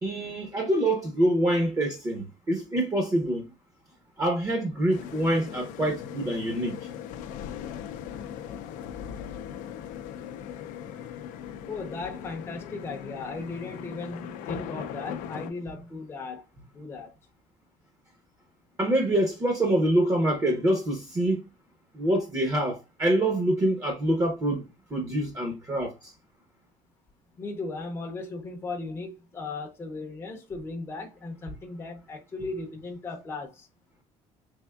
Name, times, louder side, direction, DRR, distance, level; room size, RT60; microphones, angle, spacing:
voice 1, 0.0-3.5 4.2-6.9 18.8-21.4 21.9-24.6 24.9-26.1, right 1 dB, 25° right, 0.7 m, -25 dB
sound 1, 4.9-15.5, left 9 dB, 80° left, 0.4 m, -39 dB
voice 2, 11.7-16.4 16.7-17.1 27.4-33.7, left 3 dB, 20° left, 0.6 m, -37 dB
3.5 x 3.4 x 2.2 m
cardioid pair, 155°, 13 cm